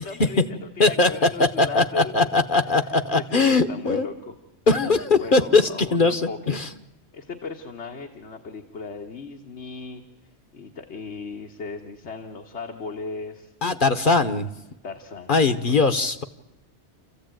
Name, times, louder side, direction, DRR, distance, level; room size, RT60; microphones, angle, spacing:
voice 1, 0.0-2.3 3.1-4.3 5.1-6.6 7.1-10.0 10.5-13.5 14.2-14.5 14.8-15.3 15.8-15.9, left 4 dB, 80° left, 2 dB, 1.7 m, -37 dB
voice 2, 0.8-4.1 4.7-6.7 13.6-14.5 15.3-16.2, left 3 dB, 50° left, 9 dB, 1.1 m, -20 dB
28.5 x 15.0 x 9.0 m, 0.93 s
omnidirectional pair, 1.1 m